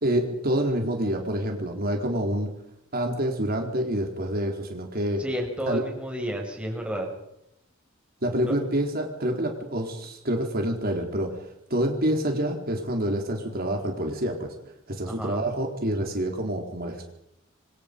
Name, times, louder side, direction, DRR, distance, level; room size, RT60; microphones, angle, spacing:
voice 1, 0.0-2.5 2.9-5.2 5.7-5.8 8.2-11.3 11.7-14.5 14.9-17.1, right 1 dB, 50° right, 2 dB, 4.0 m, -27 dB
voice 2, 5.2-7.1 8.4-8.5 15.1-15.5, equal, 5° right, 1 dB, 6.6 m, -31 dB
28.5 x 25.5 x 5.3 m, 0.80 s
head